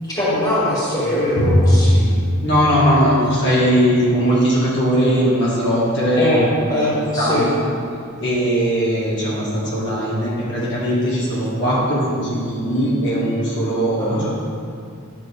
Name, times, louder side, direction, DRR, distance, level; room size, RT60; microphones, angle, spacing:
voice 1, 0.0-2.1 6.2-7.5 14.0-14.3, left 1 dB, 20° left, -8 dB, 2.2 m, -21 dB
Drum, 1.4-3.8, equal, 75° left, 1.8 m, -19 dB
voice 2, 2.4-6.5 6.8-7.6 8.2-14.3, equal, 55° left, -7 dB, 1.7 m, -19 dB
10.5 x 6.4 x 3.5 m, 2.4 s
head